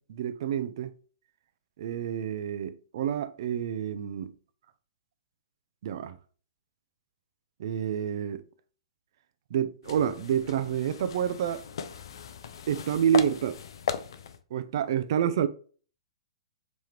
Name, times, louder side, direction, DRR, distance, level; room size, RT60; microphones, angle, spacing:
voice 1, 0.1-0.9 1.8-4.3 5.8-6.2 7.6-8.4 9.5-11.6 12.7-13.6 14.5-15.5, right 9 dB, 50° right, 0.4 m, -28 dB
sound 1, 9.8-14.4, left 7 dB, 55° left, 0.4 m, -37 dB
3.4 x 3.0 x 3.0 m
figure-of-eight pair, 110°, 3 cm